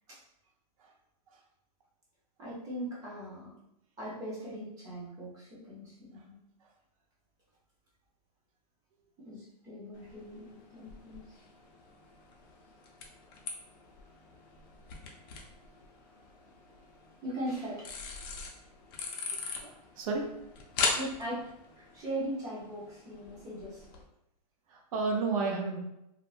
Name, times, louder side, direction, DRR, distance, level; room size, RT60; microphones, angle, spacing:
voice 1, 2.4-3.5 4.0-6.4 9.2-11.2 17.2-17.9 20.9-21.5 21.8-23.9, right 1 dB, 15° right, -6 dB, 0.7 m, -39 dB
sound 1, 9.9-24.0, left 4 dB, 35° left, 0.5 m, -41 dB
voice 2, 19.6-20.2 24.7-25.8, right 4 dB, 55° right, 1 dB, 0.6 m, -32 dB
2.5 x 2.1 x 3.2 m, 0.83 s
hypercardioid pair, 155°, 21 cm